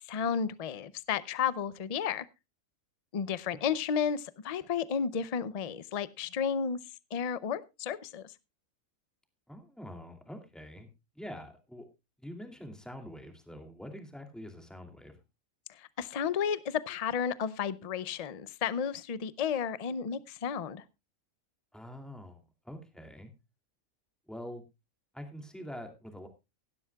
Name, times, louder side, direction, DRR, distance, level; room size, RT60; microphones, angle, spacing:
voice 1, 0.1-2.3 3.1-6.8 7.1-8.2 16.0-20.8, left 7 dB, 40° left, 17 dB, 0.5 m, -32 dB
voice 2, 9.5-10.9 11.1-11.9 12.2-15.2 21.7-23.3 24.3-24.6 25.1-26.3, equal, ahead, 5 dB, 2.5 m, -45 dB
17.0 x 12.0 x 2.3 m, 0.25 s
omnidirectional pair, 1.5 m